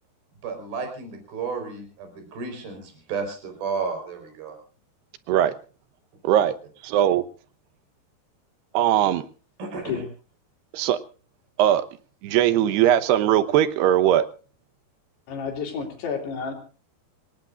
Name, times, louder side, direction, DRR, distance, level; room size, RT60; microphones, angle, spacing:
voice 1, 0.4-4.6 9.6-10.0, right 5 dB, 65° right, 6 dB, 6.1 m, -32 dB
voice 2, 6.2-6.5 6.8-7.2 8.7-9.2 10.7-11.0 11.6-11.8 12.2-14.2, right 11 dB, 80° right, 13 dB, 3.1 m, -19 dB
voice 3, 15.3-16.5, left 6 dB, 80° left, 4 dB, 5.4 m, -30 dB
27.0 x 18.0 x 2.5 m, 0.37 s
omnidirectional pair, 4.7 m